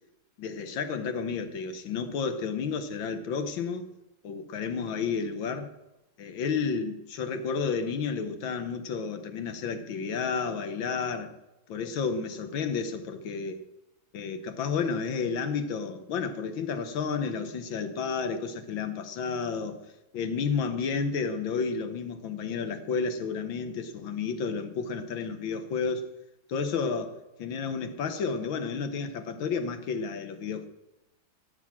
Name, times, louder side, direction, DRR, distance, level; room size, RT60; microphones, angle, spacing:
voice 1, 0.4-3.8 4.2-5.7 6.2-11.3 11.7-13.6 14.1-19.8 20.1-26.1 26.5-30.7, left 5 dB, 75° left, 1.7 m, -31 dB
14.5 x 7.7 x 7.4 m
omnidirectional pair, 2.2 m